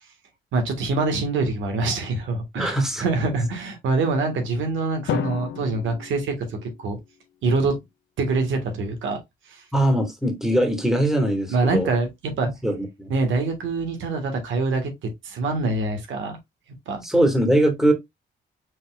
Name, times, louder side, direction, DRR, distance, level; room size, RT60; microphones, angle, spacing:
voice 1, 0.5-7.0 7.4-7.7 8.2-9.2 9.5-9.6 11.5-12.1 12.4-12.5 13.1-16.4 16.9-17.0, right 3 dB, 75° right, 1.6 m, -25 dB
voice 2, 2.6-3.0 9.7-11.9 12.6-13.1 17.0-17.9, right 1 dB, ahead, 1.8 m, -21 dB
Drum, 5.1-7.2, left 10 dB, 70° left, 0.6 m, -32 dB
5.3 x 3.8 x 2.3 m
cardioid pair, 90°, 20 cm